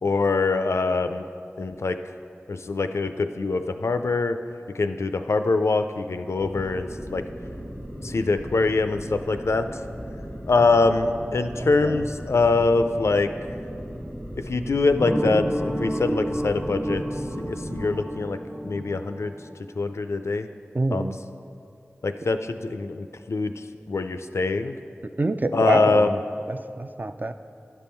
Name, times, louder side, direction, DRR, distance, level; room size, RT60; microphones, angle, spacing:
voice 1, 0.0-1.3 1.6-2.0 2.5-4.4 4.7-7.2 8.0-9.8 10.5-13.3 14.4-18.4 18.6-19.3 19.8-20.5 20.9-21.0 22.0-24.8 25.5-26.2, left 3 dB, 85° left, 9 dB, 0.4 m, -24 dB
sound 1, 6.4-18.0, equal, 80° right, 1.7 m, -37 dB
voice 2, 11.6-12.0 20.7-21.2 25.2-26.0 26.5-27.3, right 2 dB, 40° right, 9 dB, 0.4 m, -26 dB
sound 2, 15.0-19.7, right 1 dB, 15° right, 0.7 m, -30 dB
10.5 x 5.4 x 4.4 m, 2.5 s
wide cardioid pair, 40°, 5 cm